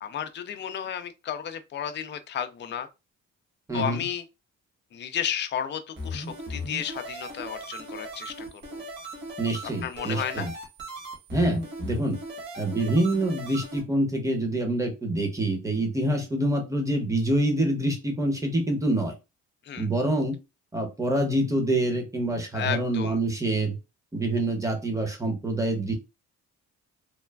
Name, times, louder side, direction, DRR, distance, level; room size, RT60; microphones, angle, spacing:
voice 1, 0.0-2.9 3.7-4.2 4.9-8.8 9.8-10.5 19.7-19.9 22.5-23.2, left 9 dB, 40° left, 0.4 m, -33 dB
voice 2, 3.7-4.0 9.4-10.5 11.3-12.2 12.6-19.1 19.8-20.4 20.7-23.8 24.1-25.9, right 1 dB, 10° right, 0.9 m, -26 dB
sound 1, 6.0-13.8, equal, 35° right, 1.3 m, -38 dB
3.2 x 2.1 x 2.3 m
cardioid pair, 90°, 30 cm